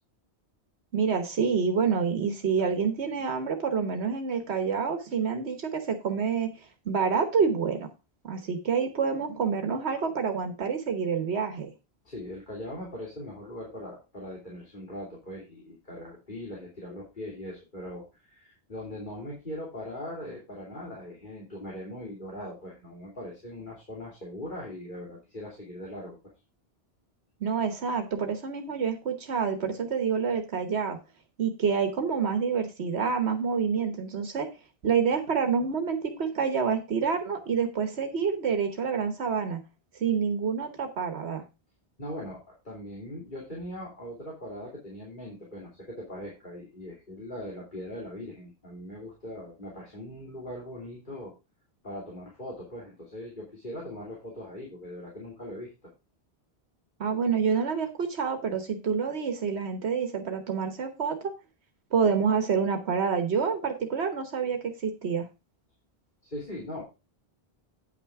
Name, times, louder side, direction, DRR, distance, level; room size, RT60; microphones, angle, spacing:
voice 1, 0.9-6.5 6.9-7.9 8.2-11.7 27.4-31.0 31.4-34.5 34.8-39.6 39.9-41.4 57.0-61.3 61.9-65.3, right 6 dB, 85° right, 6 dB, 1.4 m, -27 dB
voice 2, 12.0-26.2 42.0-42.4 42.6-51.3 51.8-55.9 66.2-66.8, left 1 dB, 50° left, -4 dB, 3.1 m, -40 dB
9.2 x 6.0 x 4.7 m, 0.27 s
omnidirectional pair, 1.1 m